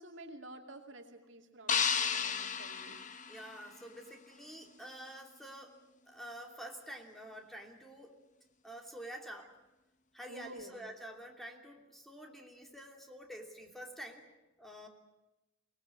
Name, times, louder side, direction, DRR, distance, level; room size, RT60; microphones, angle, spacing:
voice 1, 0.0-3.0 10.3-10.8, right 1 dB, 65° right, 3 dB, 2.5 m, -50 dB
sound 1, 1.7-4.0, left 7 dB, 40° left, 1.1 m, -33 dB
voice 2, 3.3-5.8 6.1-8.2 8.6-9.5 10.1-14.2 14.6-14.9, right 1 dB, ahead, 2 dB, 2.9 m, -48 dB
23.5 x 19.5 x 8.6 m, 0.98 s
head